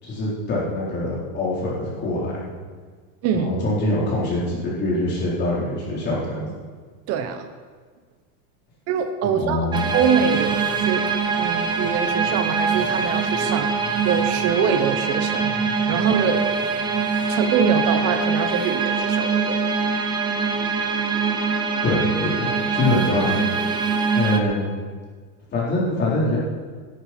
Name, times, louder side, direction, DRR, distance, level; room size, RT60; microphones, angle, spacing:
voice 1, 0.0-2.5 3.3-6.5 9.2-9.9 21.8-23.4 24.1-24.6 25.5-26.4, left 1 dB, 25° left, -6 dB, 4.1 m, -24 dB
voice 2, 7.1-7.5 8.9-11.1 11.4-15.5 15.9-16.4 17.3-19.6, right 7 dB, 35° right, 8 dB, 1.0 m, -24 dB
sound 1, 9.7-24.4, right 5 dB, 10° right, 0.5 m, -23 dB
17.5 x 11.0 x 4.5 m, 1.5 s
supercardioid pair, 170°, 44 cm